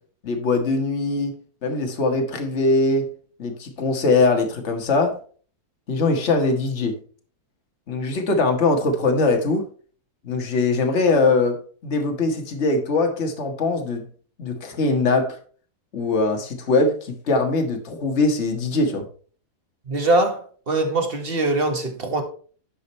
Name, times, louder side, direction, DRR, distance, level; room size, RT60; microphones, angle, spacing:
voice 1, 0.2-1.3 1.6-3.1 3.4-5.2 5.9-7.0 7.9-9.6 10.2-14.1 14.4-15.4 15.9-19.1, left 3 dB, 45° left, 1.8 m, -21 dB
voice 2, 19.9-22.2, right 2 dB, 40° right, 1.6 m, -22 dB
11.5 x 5.2 x 4.3 m
omnidirectional pair, 1.7 m